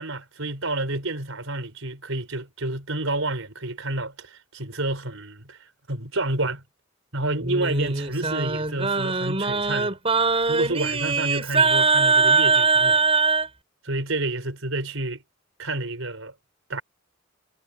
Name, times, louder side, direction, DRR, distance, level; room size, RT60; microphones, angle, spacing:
voice 1, 0.0-6.6 7.1-10.0 10.5-13.0 13.8-15.2 15.6-16.3 16.7-16.8, right 2 dB, 75° right, 5.1 m, -29 dB
Singing, 7.4-13.5, right 4 dB, 30° right, 5.4 m, -22 dB
head